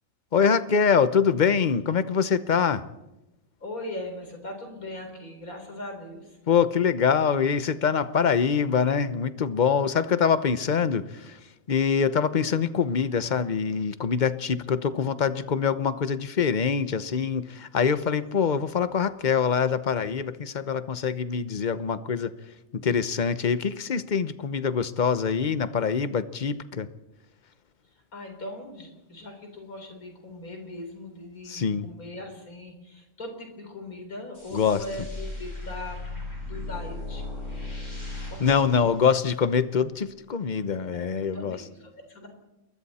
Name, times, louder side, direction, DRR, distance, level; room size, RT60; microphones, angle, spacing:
voice 1, 0.3-2.8 6.5-22.3 22.7-26.9 31.4-31.9 34.5-34.8 38.4-41.6, left 6 dB, 40° left, 13 dB, 0.9 m, -24 dB
voice 2, 3.6-6.4 28.1-36.0 36.4-37.2 38.3-38.9 40.9-42.3, left 1 dB, 85° left, 4 dB, 4.5 m, -40 dB
sound 1, 34.3-39.7, left 2 dB, 60° left, 8.3 m, -37 dB
28.5 x 22.0 x 4.3 m, 0.96 s
omnidirectional pair, 1.5 m